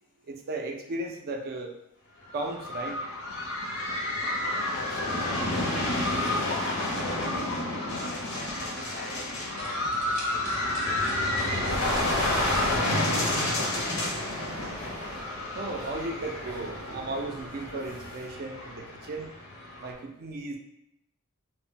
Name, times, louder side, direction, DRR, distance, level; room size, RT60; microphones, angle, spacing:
voice 1, 0.3-1.7 2.3-3.0 15.6-19.3 19.8-20.6, right 2 dB, 45° right, 3 dB, 0.3 m, -35 dB
sound 1, 2.3-19.9, left 1 dB, 85° left, 0.6 m, -30 dB
voice 2, 4.7-7.5 7.8-10.0 10.3-11.2 11.9-14.3, left 3 dB, 40° left, 2 dB, 0.3 m, -43 dB
sound 2, 7.8-13.9, right 2 dB, 90° right, 0.6 m, -45 dB
sound 3, 11.5-18.3, right 1 dB, 15° right, 0.7 m, -43 dB
2.1 x 2.0 x 3.7 m, 0.80 s
head